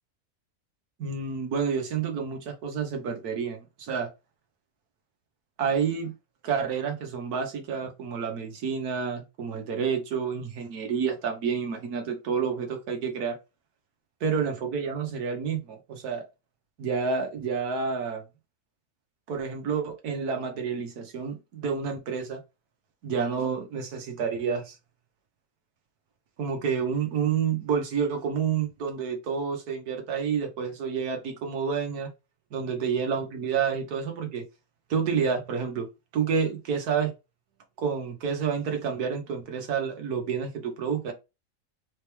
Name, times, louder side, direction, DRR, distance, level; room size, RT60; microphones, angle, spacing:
voice 1, 1.0-4.1 5.6-6.1 6.4-13.4 14.2-16.3 16.8-18.2 19.3-22.4 23.0-24.8 26.4-32.1 32.5-34.4 34.9-35.9 36.1-37.1 37.8-41.1, right 6 dB, 85° right, 1.6 m, -29 dB
4.3 x 3.4 x 3.1 m
omnidirectional pair, 1.6 m